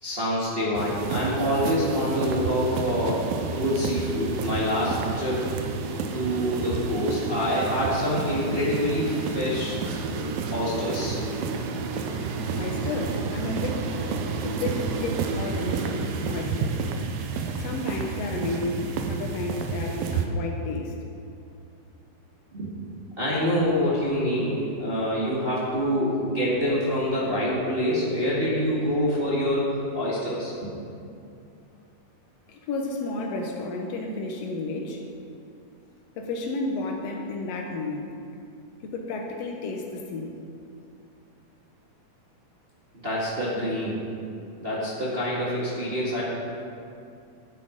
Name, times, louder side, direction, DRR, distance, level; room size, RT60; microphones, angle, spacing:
voice 1, 0.0-5.4 6.1-9.8 10.5-11.2 22.5-22.7 23.2-30.7 43.0-44.0 44.6-46.2, equal, 30° right, -7 dB, 1.0 m, -26 dB
sound 1, 0.7-20.3, right 4 dB, 80° right, 2.5 m, -30 dB
voice 2, 12.5-13.9 14.3-16.8 17.6-20.9 32.5-35.0 36.2-38.1 38.8-40.3, left 2 dB, 90° left, 1 dB, 1.4 m, -32 dB
12.0 x 8.7 x 5.2 m, 2.5 s
omnidirectional pair, 4.2 m